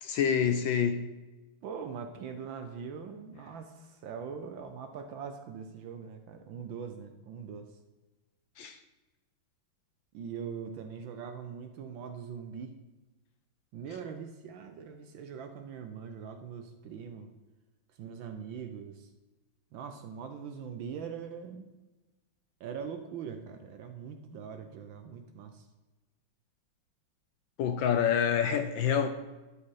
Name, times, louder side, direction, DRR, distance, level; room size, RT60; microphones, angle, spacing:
voice 1, 0.0-1.1 8.6-8.8 27.6-29.1, left 8 dB, 70° left, 1.2 m, -27 dB
voice 2, 1.6-7.7 10.1-12.8 13.7-17.3 18.0-19.1 19.7-21.7 22.6-25.7, right 6 dB, 70° right, 1.3 m, -42 dB
11.5 x 4.9 x 4.7 m
omnidirectional pair, 2.4 m